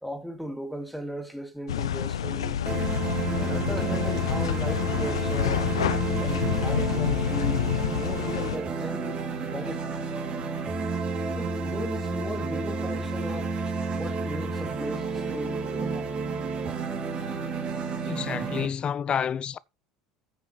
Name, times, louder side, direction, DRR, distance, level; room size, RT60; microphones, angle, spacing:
voice 1, 0.0-2.6 3.4-5.7 6.2-10.0 11.3-13.6 13.9-16.1, equal, ahead, 2.7 m, -37 dB
sound 1, 1.7-8.6, left 9 dB, 80° left, 0.6 m, -28 dB
sound 2, 2.7-18.7, right 4 dB, 40° right, 2.5 m, -31 dB
voice 2, 18.0-19.6, left 8 dB, 35° left, 0.5 m, -29 dB
14.5 x 6.4 x 3.3 m
hypercardioid pair, 70°, 3 cm